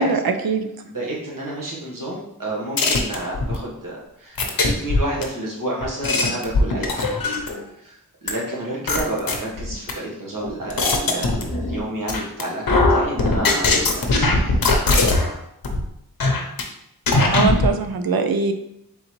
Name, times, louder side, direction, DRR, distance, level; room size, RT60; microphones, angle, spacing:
voice 1, 0.0-0.7 17.3-18.5, right 4 dB, 80° right, 7 dB, 0.5 m, -21 dB
voice 2, 0.8-7.1 7.4-8.0 8.2-14.6, right 1 dB, 65° right, -4 dB, 1.3 m, -30 dB
sound 1, 2.8-3.6 4.4-5.2 5.8-7.6 8.3-8.4 8.9-9.9 10.4-11.8 12.1-12.4 12.7-15.3 15.6-15.8 16.2-16.6 17.1-17.7, left 3 dB, 75° left, 0.7 m, -19 dB
3.9 x 3.8 x 3.0 m, 0.80 s
wide cardioid pair, 90°, 36 cm